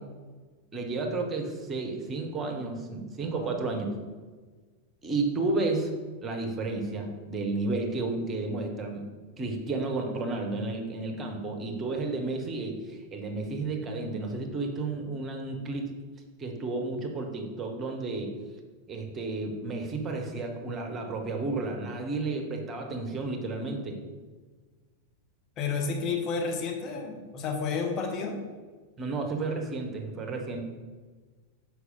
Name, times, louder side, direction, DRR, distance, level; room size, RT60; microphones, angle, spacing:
voice 1, 0.7-3.9 5.0-6.0 6.2-9.0 9.4-15.9 16.4-18.3 18.9-24.0 29.0-30.6, right 3 dB, 20° right, 3 dB, 1.2 m, -32 dB
voice 2, 25.6-28.4, left 5 dB, 35° left, 2 dB, 1.2 m, -31 dB
6.6 x 4.9 x 5.4 m, 1.4 s
figure-of-eight pair, 90°, 0 cm